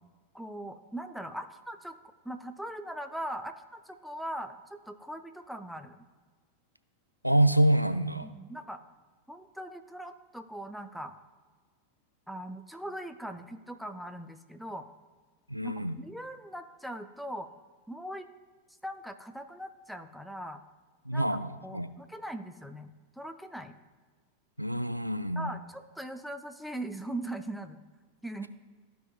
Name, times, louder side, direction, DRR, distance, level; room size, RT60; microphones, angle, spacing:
voice 1, 0.3-2.0 2.2-6.1 8.2-8.8 9.3-11.2 12.3-14.9 15.6-17.5 17.9-18.3 18.8-20.6 21.1-23.8 25.4-27.8 28.2-28.5, right 1 dB, ahead, 7 dB, 0.5 m, -40 dB
voice 2, 7.2-8.3 15.5-16.0 21.1-21.9 24.6-25.5, right 1 dB, 90° right, 10 dB, 0.3 m, -26 dB
14.0 x 5.1 x 2.3 m, 1.5 s
figure-of-eight pair, 90°, 0 cm